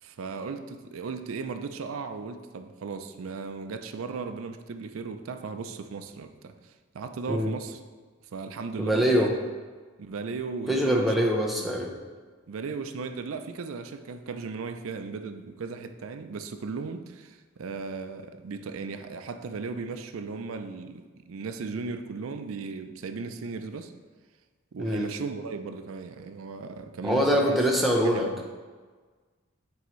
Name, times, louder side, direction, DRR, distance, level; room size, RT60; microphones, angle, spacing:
voice 1, 0.0-7.8 8.3-9.4 10.0-11.3 11.5-11.8 12.5-23.9 24.7-27.6 28.0-28.4, right 4 dB, 90° right, 8 dB, 0.4 m, -36 dB
voice 2, 8.8-9.3 10.7-11.9 24.8-25.1 27.0-28.3, equal, ahead, -1 dB, 0.6 m, -24 dB
8.2 x 4.5 x 3.1 m, 1.4 s
head